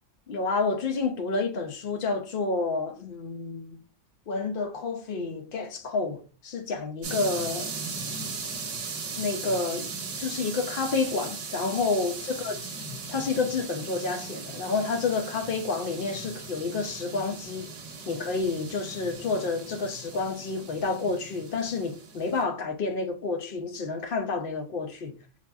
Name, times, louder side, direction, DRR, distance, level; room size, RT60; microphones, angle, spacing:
voice 1, 0.3-3.8 4.3-7.8 9.2-9.9 10.2-12.6 13.1-17.7 18.1-25.2, left 4 dB, 60° left, 0.7 m, -29 dB
sound 1, 7.0-22.4, right 4 dB, 80° right, 1.1 m, -38 dB
3.9 x 2.8 x 2.2 m
omnidirectional pair, 1.2 m